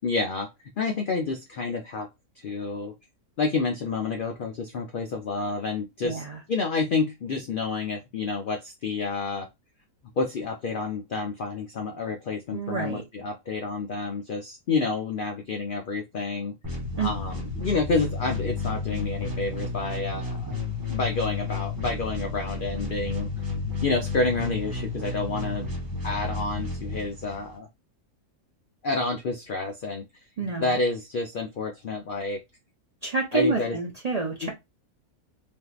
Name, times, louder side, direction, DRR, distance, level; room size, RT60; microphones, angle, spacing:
voice 1, 0.0-0.5 0.8-2.1 2.4-2.9 3.4-9.5 10.2-16.6 17.0-20.6 20.9-23.3 23.8-25.7 26.0-27.7 28.8-30.1 30.4-32.4 33.3-33.8 34.4-34.5, left 3 dB, 85° left, 0.4 m, -29 dB
voice 2, 6.0-6.4 12.5-13.0 17.0-17.1 30.4-30.7 33.0-34.5, right 3 dB, 45° right, 0.5 m, -28 dB
sound 1, 16.6-27.6, left 3 dB, 15° right, 0.8 m, -32 dB
3.4 x 2.6 x 2.3 m
omnidirectional pair, 1.6 m